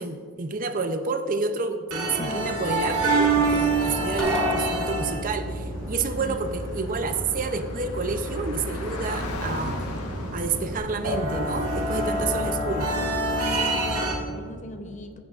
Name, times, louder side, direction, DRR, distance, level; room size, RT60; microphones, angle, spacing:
voice 1, 0.0-9.8 10.3-12.9, right 4 dB, 35° right, 8 dB, 0.5 m, -29 dB
sound 1, 1.9-14.1, right 2 dB, 90° right, 1.8 m, -27 dB
sound 2, 4.2-5.5, left 2 dB, 5° left, 1.1 m, -30 dB
Car / Traffic noise roadway noise, 5.7-10.8, left 2 dB, 80° left, 1.3 m, -38 dB
voice 2, 6.8-7.1 11.6-12.0 12.3-12.7 13.4-15.2, left 2 dB, 35° left, 6 dB, 0.7 m, -39 dB
15.0 x 10.0 x 2.4 m, 2.2 s
head